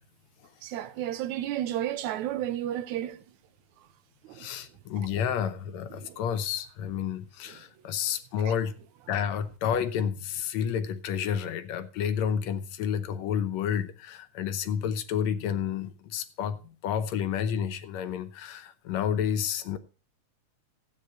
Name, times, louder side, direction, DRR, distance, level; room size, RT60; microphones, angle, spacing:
voice 1, 0.6-3.2 4.3-4.5 6.0-6.2, right 12 dB, 80° right, 2.1 m, -32 dB
voice 2, 4.4-8.8 9.1-19.8, left 8 dB, 75° left, 1.9 m, -30 dB
13.0 x 8.6 x 4.4 m
omnidirectional pair, 3.4 m